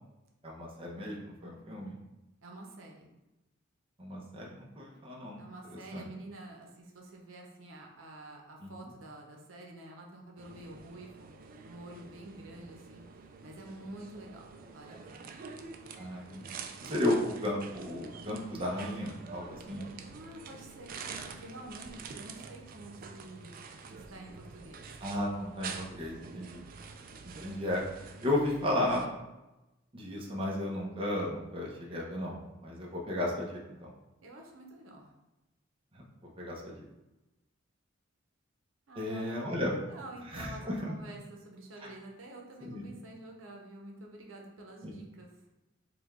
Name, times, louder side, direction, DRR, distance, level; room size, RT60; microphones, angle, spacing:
voice 1, 0.4-1.9 4.0-5.4 5.9-6.1 8.6-8.7 15.9-16.5 16.8-19.9 25.0-26.6 27.4-27.8 28.2-29.1 29.9-33.9 36.4-36.7 39.0-39.7 40.3-40.7 41.8-41.9 42.6-42.9 44.8-44.9, left 1 dB, 30° right, -3 dB, 0.8 m, -34 dB
voice 2, 2.4-3.1 5.4-11.3 11.6-15.4 20.1-23.6 23.9-24.9 34.2-35.1 38.9-45.3, right 1 dB, 90° right, 0 dB, 0.8 m, -49 dB
sound 1, 10.4-29.1, right 5 dB, 45° right, 0.4 m, -47 dB
4.9 x 2.3 x 3.6 m, 1.0 s
head